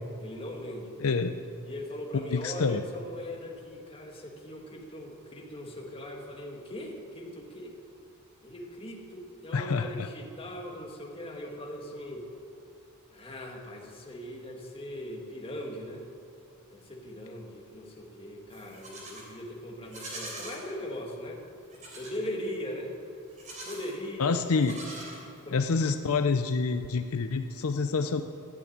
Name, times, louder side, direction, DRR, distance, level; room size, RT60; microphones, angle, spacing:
voice 1, 0.2-0.9 1.6-7.7 8.4-12.3 13.1-16.1 16.7-21.4 21.9-22.9 23.6-24.4 25.5-25.6, left 1 dB, 25° left, 0 dB, 2.0 m, -40 dB
voice 2, 1.0-1.3 2.1-2.8 9.5-10.1 24.2-24.8 25.5-28.2, left 4 dB, 75° left, 8 dB, 0.6 m, -27 dB
Livestock farm animals working animals, 18.5-19.3 19.8-20.6 21.7-22.2 23.3-23.9 24.5-25.6, right 2 dB, 35° right, 3.5 m, -43 dB
14.5 x 8.6 x 8.8 m, 2.5 s
head